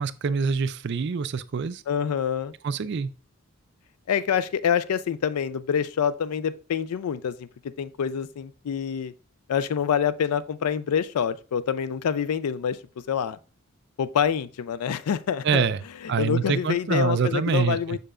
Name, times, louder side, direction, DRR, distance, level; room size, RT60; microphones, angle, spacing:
voice 1, 0.0-1.8 2.6-3.1 15.4-15.8 16.1-18.0, right 5 dB, 50° right, 0.4 m, -25 dB
voice 2, 1.9-2.5 4.1-7.5 7.8-9.1 9.5-12.8 13.1-13.4 14.0-15.7 16.0-18.0, left 8 dB, 85° left, 0.4 m, -26 dB
6.7 x 6.6 x 2.5 m
head